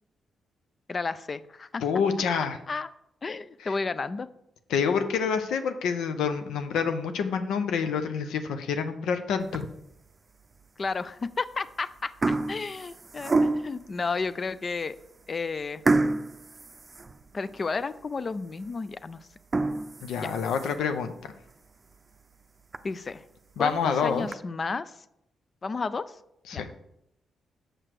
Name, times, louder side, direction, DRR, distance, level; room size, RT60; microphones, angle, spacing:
voice 1, 0.9-1.8 2.7-2.9 3.2-4.3 10.8-15.0 15.3-15.8 17.3-19.3 20.2-20.4 22.8-23.2 23.6-24.9 25.6-26.0 26.5-26.6, left 4 dB, 45° left, 15 dB, 0.5 m, -32 dB
voice 2, 1.8-2.6 3.6-3.7 4.7-9.7 20.0-21.2 23.6-24.3 26.5-26.7, left 6 dB, 80° left, 8 dB, 0.7 m, -27 dB
sound 1, 9.4-9.9 10.5-10.6 11.5-11.7 12.0-13.9 14.5-14.6 14.9-15.1 15.9-17.6 18.0-18.1 18.6-18.7 19.3-20.9 21.4-21.5 21.9-22.0 22.3-22.4 22.7-22.8 23.7-24.3, right 3 dB, 35° right, 0.5 m, -28 dB
6.7 x 5.8 x 4.7 m, 0.79 s
supercardioid pair, 50°, 0 cm